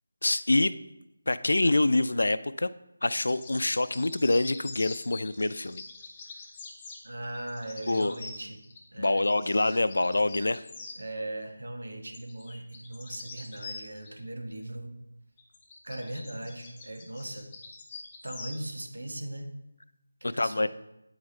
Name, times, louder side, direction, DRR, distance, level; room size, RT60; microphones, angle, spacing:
voice 1, 0.2-0.7 1.3-2.7 3.0-5.8 7.9-8.1 9.0-10.6 20.4-20.7, left 2 dB, 75° left, 15 dB, 0.3 m, -25 dB
sound 1, 3.0-11.0 12.1-14.1 15.4-18.6, left 4 dB, 15° left, 0.7 m, -45 dB
voice 2, 7.0-8.6 8.9-9.3 11.0-15.0 15.8-17.5 18.2-19.5 20.2-20.7, right 1 dB, 80° right, 4 dB, 1.2 m, -39 dB
8.7 x 4.7 x 3.2 m, 0.88 s
figure-of-eight pair, 170°, 0 cm